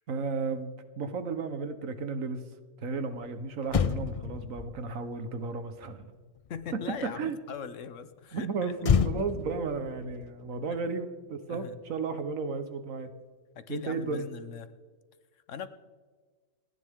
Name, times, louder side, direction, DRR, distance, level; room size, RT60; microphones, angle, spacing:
voice 1, 0.1-2.4 2.8-6.1 7.2-7.4 8.3-13.1 13.7-14.3, right 4 dB, 90° right, 9 dB, 1.6 m, -34 dB
Motor vehicle (road), 3.2-3.3 3.6-7.2 8.8-11.4 11.7-11.9, left 6 dB, 55° left, 0.4 m, -31 dB
voice 2, 6.5-8.8 10.7-10.8 11.5-11.8 13.5-14.7 15.5-15.7, left 7 dB, 70° left, 12 dB, 1.2 m, -40 dB
28.5 x 10.5 x 3.7 m, 1.5 s
omnidirectional pair, 1.3 m